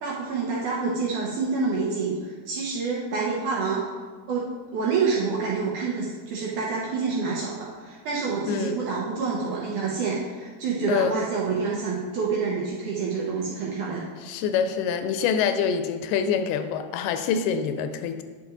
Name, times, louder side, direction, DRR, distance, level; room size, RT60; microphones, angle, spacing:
voice 1, 0.0-3.8 4.3-14.0, right 4 dB, 70° right, -4 dB, 2.0 m, -27 dB
voice 2, 8.5-8.8 10.9-11.2 14.2-18.2, left 7 dB, 85° left, 8 dB, 2.4 m, -25 dB
10.0 x 5.8 x 3.8 m, 1.4 s
omnidirectional pair, 4.6 m